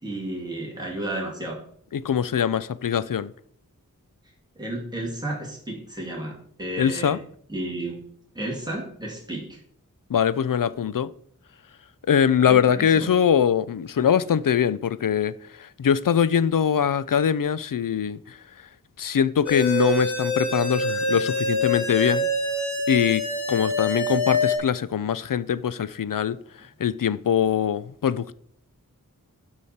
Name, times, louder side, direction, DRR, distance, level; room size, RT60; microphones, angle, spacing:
voice 1, 0.0-1.6 4.6-7.2 7.5-8.0 8.3-9.6 12.5-13.1, right 1 dB, 10° right, 2.5 m, -32 dB
voice 2, 1.9-3.3 6.8-7.2 10.1-11.1 12.1-18.4 19.0-22.3 22.9-26.4 26.8-28.3, left 8 dB, 75° left, 0.5 m, -22 dB
sound 1, 19.5-24.6, left 1 dB, 55° left, 2.6 m, -25 dB
12.5 x 5.0 x 4.2 m
wide cardioid pair, 60°, 34 cm